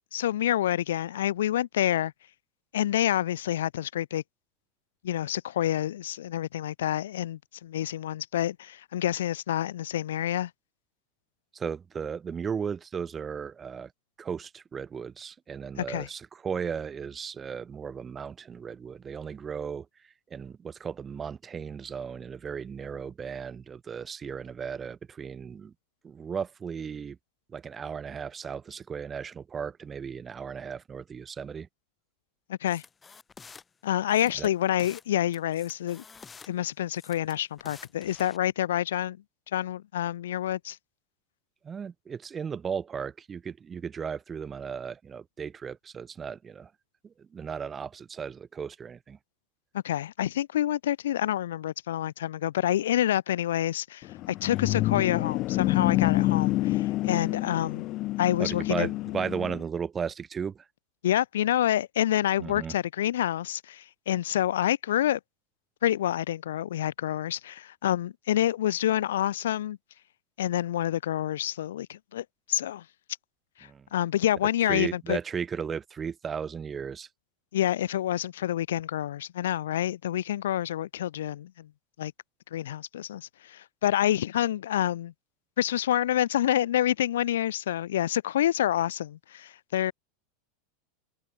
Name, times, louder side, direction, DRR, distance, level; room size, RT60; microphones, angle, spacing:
voice 1, 0.1-2.1 2.7-4.2 5.0-10.5 15.8-16.1 32.5-32.8 33.8-36.0 36.5-39.2 39.5-40.8 49.7-57.9 58.2-58.9 61.0-65.2 65.8-69.8 70.4-72.8 73.6-75.2 77.5-81.7 82.0-82.1 82.5-85.1 85.6-89.9, left 12 dB, 85° left, 1.5 m, -28 dB
voice 2, 11.5-13.9 14.2-25.7 26.0-27.2 27.5-31.7 34.3-34.5 41.6-46.7 47.0-49.2 58.4-60.7 62.4-62.7 73.6-73.9 74.7-77.1, right 6 dB, 20° right, 1.4 m, -35 dB
sound 1, 32.7-33.6 34.1-35.1 35.3-36.5 36.9-38.4, left 5 dB, 20° left, 3.1 m, -49 dB
sound 2, 54.0-59.6, left 17 dB, 45° left, 1.1 m, -27 dB
supercardioid pair, 120°, 0 cm